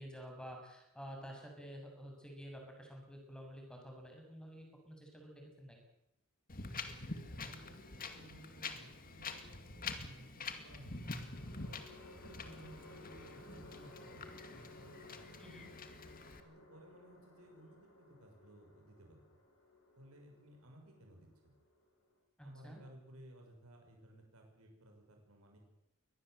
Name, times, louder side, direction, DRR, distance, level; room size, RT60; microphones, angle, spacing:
voice 1, 0.0-5.8 15.4-15.7 22.4-22.8, equal, 5° left, 2 dB, 6.8 m, -50 dB
Wind, 6.5-16.4, left 4 dB, 40° left, 2.3 m, -47 dB
voice 2, 6.8-11.1 11.7-15.8 16.4-19.4 20.0-21.6 22.4-25.6, right 1 dB, 70° right, 2 dB, 6.3 m, -58 dB
sound 1, 7.8-8.6 10.8-22.2, left 2 dB, 60° left, 8.0 m, -59 dB
23.5 x 19.0 x 8.0 m, 0.87 s
head